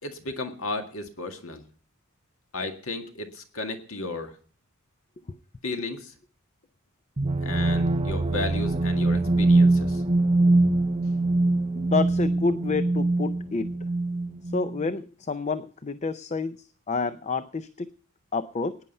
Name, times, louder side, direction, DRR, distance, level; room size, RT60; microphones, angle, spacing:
voice 1, 0.0-1.6 2.5-4.3 5.6-6.1 7.4-10.0, left 2 dB, 75° left, 5 dB, 1.9 m, -34 dB
sound 1, 7.2-14.8, right 2 dB, 25° right, 0.7 m, -23 dB
voice 2, 11.8-13.7 14.5-16.6 16.9-17.9 18.3-18.8, left 4 dB, 30° left, 12 dB, 0.5 m, -29 dB
16.0 x 9.9 x 5.4 m, 0.43 s
head